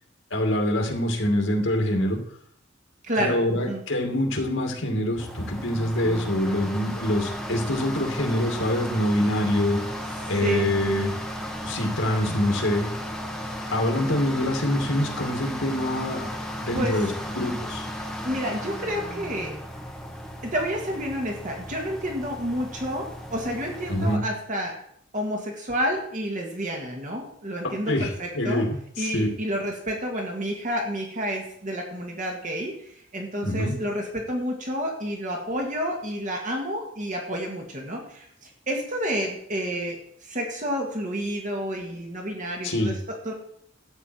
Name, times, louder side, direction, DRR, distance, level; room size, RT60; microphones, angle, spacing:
voice 1, 0.3-2.2 3.2-9.8 10.3-11.1 11.6-12.9 13.7-17.9 23.9-24.2 27.6-29.3 33.4-33.7 42.6-42.9, left 1 dB, 75° left, 3 dB, 2.4 m, -25 dB
voice 2, 3.0-3.8 10.4-10.7 16.7-17.1 18.2-19.5 20.4-24.8 25.1-28.7 29.0-43.3, equal, 40° right, 1 dB, 2.0 m, -30 dB
sound 1, 5.2-24.2, equal, 5° left, 1.4 m, -35 dB
12.5 x 9.0 x 4.6 m, 0.68 s
head